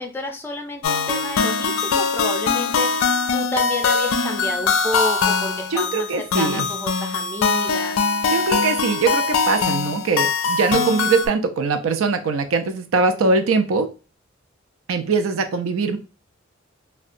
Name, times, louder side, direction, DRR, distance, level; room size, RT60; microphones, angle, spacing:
voice 1, 0.0-6.1 6.3-8.0, left 2 dB, 10° left, 3 dB, 0.4 m, -30 dB
sound 1, 0.8-11.3, left 5 dB, 85° left, 0.4 m, -22 dB
voice 2, 5.7-6.7 8.3-13.9 14.9-16.0, right 4 dB, 80° right, 8 dB, 0.4 m, -21 dB
2.7 x 2.1 x 2.5 m, 0.34 s
head